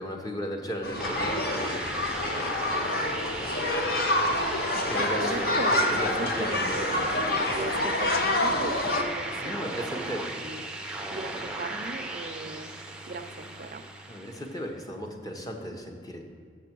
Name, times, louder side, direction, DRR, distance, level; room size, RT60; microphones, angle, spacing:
voice 1, 0.0-1.9 4.9-5.5 5.9-7.0 7.4-8.0 9.4-10.3 14.1-16.2, equal, 20° left, 2 dB, 0.9 m, -36 dB
sound 1, 0.8-9.0, left 1 dB, 55° left, 0.8 m, -27 dB
sound 2, 1.0-14.7, right 2 dB, 5° right, 0.6 m, -36 dB
voice 2, 2.7-3.3 3.7-3.9 5.0-7.3 7.5-10.7 11.1-12.7 13.1-13.8, right 3 dB, 50° right, 8 dB, 0.5 m, -38 dB
6.8 x 6.7 x 6.0 m, 2.1 s
head